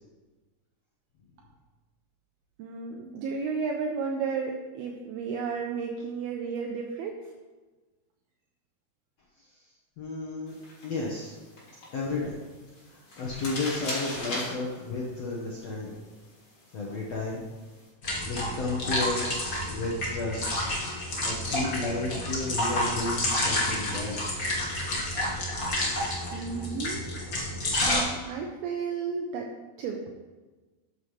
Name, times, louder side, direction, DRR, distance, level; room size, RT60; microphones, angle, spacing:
voice 1, 2.6-7.2 26.3-27.0 27.8-29.5 29.8-30.0, right 5 dB, 80° right, 1 dB, 2.4 m, -33 dB
voice 2, 10.0-10.5 10.8-11.3 11.9-12.4 12.9-16.0 16.7-17.4 18.2-20.6 21.2-24.5, left 3 dB, 85° left, -4 dB, 1.4 m, -33 dB
sound 1, 10.5-17.9, left 1 dB, 35° left, 3.0 m, -41 dB
sound 2, 18.0-28.0, left 1 dB, 65° left, 0.8 m, -30 dB
13.0 x 7.2 x 3.2 m, 1.2 s
omnidirectional pair, 4.8 m